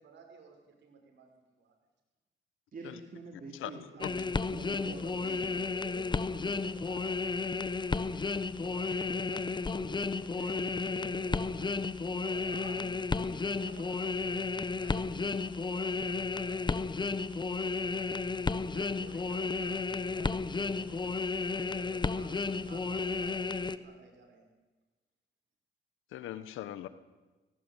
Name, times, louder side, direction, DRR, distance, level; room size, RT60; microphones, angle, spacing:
voice 1, 0.0-1.7 3.9-4.1 4.7-8.2 8.6-21.1 21.5-24.5 26.3-26.4, right 5 dB, 65° right, 3 dB, 6.2 m, -54 dB
voice 2, 2.7-5.6, right 4 dB, 45° right, 2 dB, 3.5 m, -47 dB
voice 3, 3.6-4.1 26.1-26.9, left 12 dB, 85° left, 14 dB, 1.2 m, -40 dB
sound 1, 4.0-23.8, left 4 dB, 25° left, 1.0 m, -33 dB
18.5 x 18.0 x 9.1 m, 1.2 s
cardioid pair, 90°, 20 cm